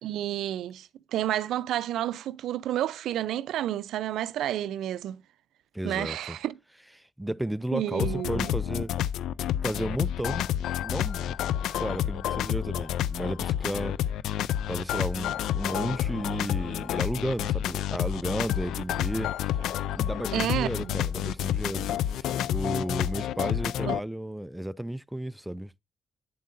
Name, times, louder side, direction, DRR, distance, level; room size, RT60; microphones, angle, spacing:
voice 1, 0.0-5.2 5.8-6.5 7.7-8.5 20.3-21.0 23.9-24.0, right 12 dB, 80° right, 0.4 m, -30 dB
voice 2, 5.7-6.4 7.0-8.9 9.6-10.5 10.8-11.4 11.7-14.0 14.7-19.3 19.9-25.8, right 1 dB, 5° right, 0.3 m, -33 dB
sound 1, 8.0-24.0, left 11 dB, 85° left, 0.3 m, -29 dB
8.5 x 7.4 x 2.5 m
cardioid pair, 90°, 0 cm